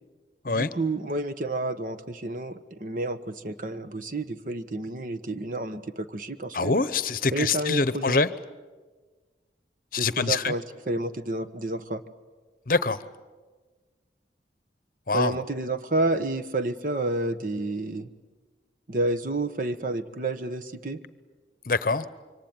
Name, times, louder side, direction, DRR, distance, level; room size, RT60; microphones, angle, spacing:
voice 1, 0.5-6.7 7.3-8.2 10.0-12.0 15.1-18.1 18.9-21.0, right 2 dB, 50° right, 10 dB, 1.1 m, -30 dB
voice 2, 6.5-8.3 9.9-10.5 12.7-13.0 15.1-15.4 21.7-22.0, left 4 dB, 50° left, 15 dB, 0.9 m, -24 dB
26.5 x 24.5 x 8.9 m, 1.4 s
head